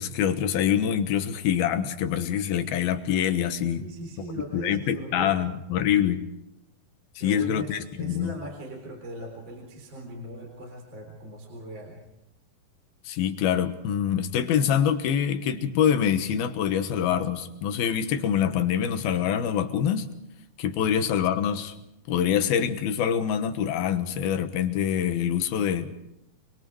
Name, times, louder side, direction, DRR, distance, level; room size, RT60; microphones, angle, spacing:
voice 1, 0.0-3.9 4.5-6.3 7.2-8.4 13.1-20.1 20.6-21.7 22.1-26.0, left 9 dB, 80° left, 8 dB, 3.1 m, -25 dB
voice 2, 3.6-5.6 7.2-12.0 20.9-21.0, right 2 dB, 30° right, 0 dB, 4.3 m, -40 dB
29.0 x 22.0 x 4.7 m, 0.86 s
omnidirectional pair, 4.4 m